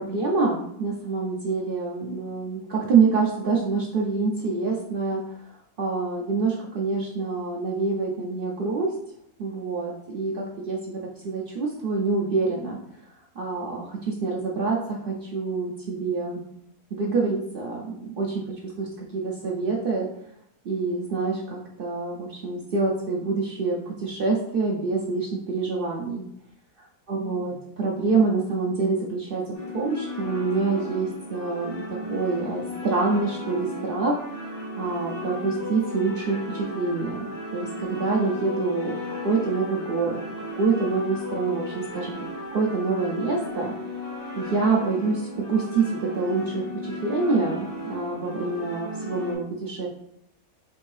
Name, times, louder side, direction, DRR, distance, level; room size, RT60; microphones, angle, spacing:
voice 1, 0.0-5.2 5.8-8.9 9.4-12.8 13.4-16.4 16.9-20.1 20.6-26.2 27.1-29.4 29.7-34.2 34.8-37.3 37.5-40.2 40.6-42.1 42.5-44.0 44.4-49.9, right 4 dB, 80° right, -3 dB, 0.5 m, -26 dB
sound 1, 29.5-49.4, left 2 dB, 50° left, 1.5 m, -35 dB
4.3 x 2.6 x 3.2 m, 0.73 s
omnidirectional pair, 1.6 m